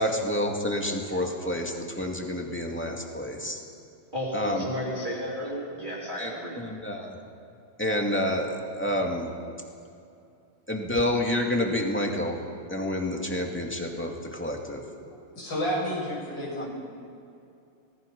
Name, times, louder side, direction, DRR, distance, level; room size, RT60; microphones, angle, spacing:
voice 1, 0.0-3.6 4.3-4.6 6.2-6.3 6.6-7.2 7.8-9.3 10.7-12.4 12.7-14.8 16.6-16.7, left 1 dB, 5° left, 1 dB, 2.2 m, -28 dB
voice 2, 4.1-6.6, equal, 20° right, -8 dB, 3.9 m, -33 dB
voice 3, 15.1-16.7, equal, 70° left, -5 dB, 8.6 m, -31 dB
28.5 x 19.0 x 5.4 m, 2.5 s
omnidirectional pair, 2.1 m